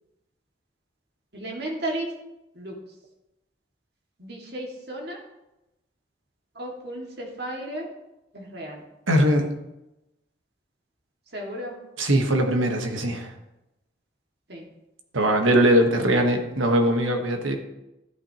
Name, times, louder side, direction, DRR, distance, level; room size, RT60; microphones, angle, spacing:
voice 1, 1.3-2.1 2.6-2.7 4.2-5.2 6.6-7.9 8.3-8.8 11.3-11.8 14.5-14.6, right 1 dB, 55° right, -1 dB, 2.2 m, -34 dB
voice 2, 9.1-9.5 12.0-13.3 15.1-17.6, right 1 dB, 85° right, 4 dB, 1.3 m, -21 dB
13.0 x 8.5 x 3.0 m, 0.94 s
head